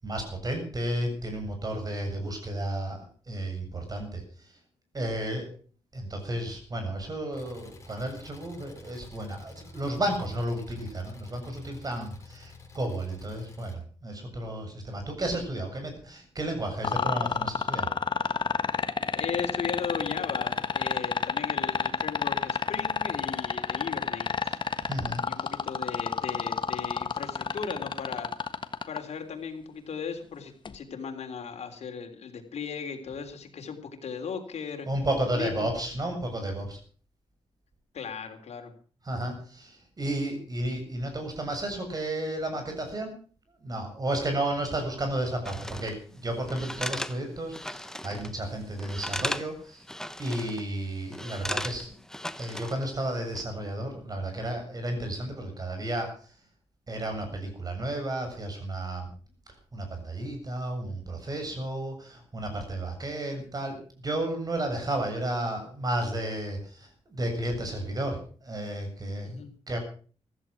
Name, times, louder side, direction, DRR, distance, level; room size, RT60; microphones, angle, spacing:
voice 1, 0.0-4.2 4.9-5.5 5.9-17.9 24.9-25.2 34.9-36.8 39.1-43.1 43.6-49.8 50.2-51.9 52.4-56.1 56.9-59.1 59.7-69.8, right 1 dB, 35° right, 5 dB, 7.3 m, -32 dB
Engine, 7.3-13.7, left 2 dB, 25° left, 6.6 m, -49 dB
sound 1, 16.8-29.0 30.6-30.8, left 5 dB, 45° left, 1.4 m, -28 dB
voice 2, 19.2-24.6 25.3-28.3 28.9-34.9 35.3-35.7 37.9-38.7 69.2-69.5, left 6 dB, 75° left, 4 dB, 3.7 m, -37 dB
sound 2, 45.4-45.9 46.5-48.3 48.6-49.5 49.8-50.6 51.1-52.8 53.2-53.4, left 1 dB, 5° left, 0.8 m, -36 dB
15.5 x 14.0 x 6.2 m, 0.42 s
wide cardioid pair, 105°, 11 cm